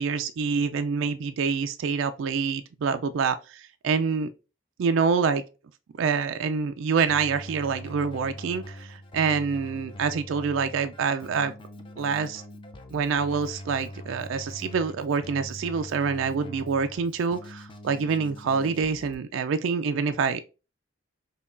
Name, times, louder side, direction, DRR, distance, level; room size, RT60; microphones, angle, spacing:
voice 1, 0.0-4.3 4.8-5.4 6.0-11.5 12.0-12.4 12.9-20.4, right 5 dB, 80° right, 0.3 m, -26 dB
Keyboard (musical), 7.1-19.1, equal, 25° left, 0.5 m, -42 dB
5.5 x 2.3 x 2.5 m
head